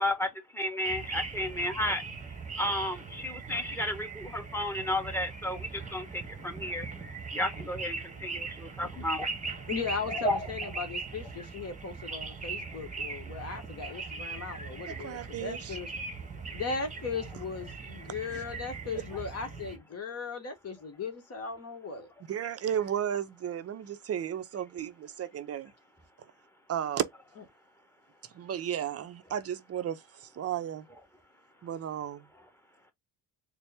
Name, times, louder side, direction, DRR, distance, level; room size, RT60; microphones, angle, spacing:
voice 1, 0.0-2.0 2.6-6.9 7.3-9.3 10.1-10.4, left 1 dB, 5° left, 1.1 m, -32 dB
sound 1, 0.8-19.8, right 4 dB, 20° right, 1.0 m, -40 dB
voice 2, 9.7-15.9 16.5-22.1, left 5 dB, 40° left, 1.1 m, -37 dB
voice 3, 14.9-15.8 18.3-18.4 22.3-25.7 26.7-27.1 28.2-30.9 31.6-32.2, right 9 dB, 40° right, 0.5 m, -34 dB
4.2 x 2.0 x 3.3 m
cardioid pair, 95°, 39 cm